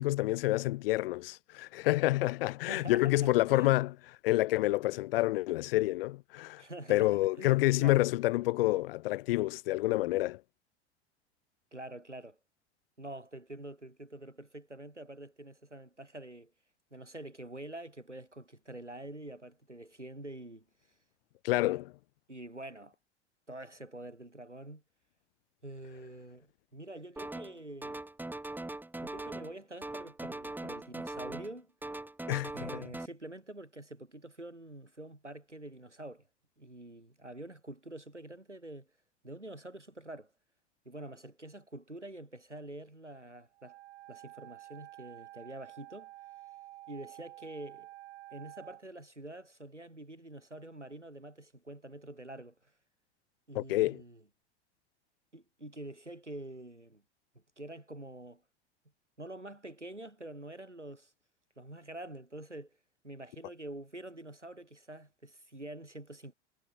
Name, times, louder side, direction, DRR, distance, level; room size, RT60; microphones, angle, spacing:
voice 1, 0.0-3.9 4.2-6.6 6.9-10.4 21.4-21.9 32.3-32.5 53.5-54.0, left 18 dB, 55° left, 0.8 m, -28 dB
voice 2, 2.7-3.8 6.6-8.0 11.7-12.4 13.0-16.5 16.9-20.7 22.3-23.0 23.5-24.8 25.6-28.0 29.0-31.7 32.5-36.3 36.6-38.9 39.2-40.3 40.9-43.8 44.1-46.1 46.9-47.9 48.3-52.7 53.5-54.2 55.3-57.0 57.6-58.4 59.2-61.1 61.6-62.8 63.0-66.3, right 1 dB, 90° right, 7.2 m, -46 dB
sound 1, 27.2-27.6 27.8-29.5 29.8-31.5 31.8-33.1, right 2 dB, 5° right, 3.1 m, -41 dB
Wind instrument woodwind instrument, 43.5-48.8, right 16 dB, 60° right, 4.7 m, -50 dB
figure-of-eight pair, 80°, 34 cm